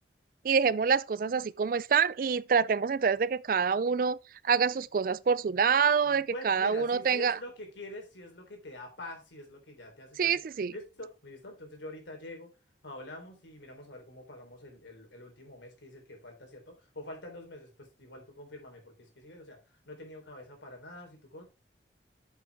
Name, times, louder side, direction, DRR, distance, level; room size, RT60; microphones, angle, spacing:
voice 1, 0.4-4.2 4.4-7.4 10.2-10.7, right 6 dB, 50° right, 0.4 m, -26 dB
voice 2, 6.0-10.4 10.7-12.5 12.8-21.4, left 1 dB, 90° left, 3.6 m, -46 dB
8.2 x 7.2 x 3.5 m
head